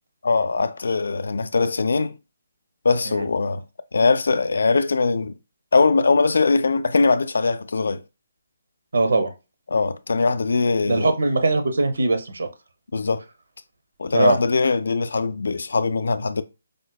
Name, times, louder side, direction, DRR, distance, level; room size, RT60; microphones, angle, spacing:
voice 1, 0.2-2.1 2.8-3.6 3.9-5.3 5.7-8.0 9.7-11.1 12.9-13.2 14.0-16.4, left 4 dB, 75° left, 0.3 m, -21 dB
voice 2, 8.9-9.3 10.9-12.5 14.1-14.4, right 3 dB, 75° right, 0.5 m, -21 dB
4.9 x 2.1 x 2.2 m
hypercardioid pair, 175°, 0 cm